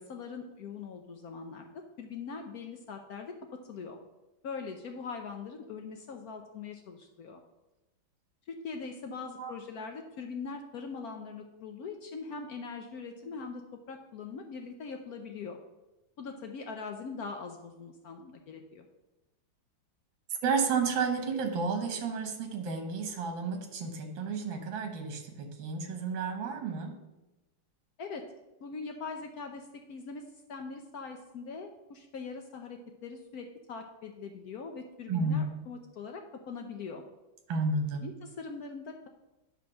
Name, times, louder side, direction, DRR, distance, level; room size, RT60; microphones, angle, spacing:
voice 1, 0.0-1.7 2.0-3.3 3.7-4.0 4.4-7.4 8.6-13.6 13.9-15.6 16.2-18.8 28.0-28.2 28.6-30.2 30.5-37.0 38.0-39.1, left 5 dB, 70° left, 4 dB, 0.9 m, -42 dB
voice 2, 9.1-9.5 20.4-27.0 35.1-35.4 37.5-38.0, right 4 dB, 75° right, 5 dB, 1.8 m, -32 dB
9.8 x 3.5 x 6.2 m, 1.0 s
omnidirectional pair, 2.1 m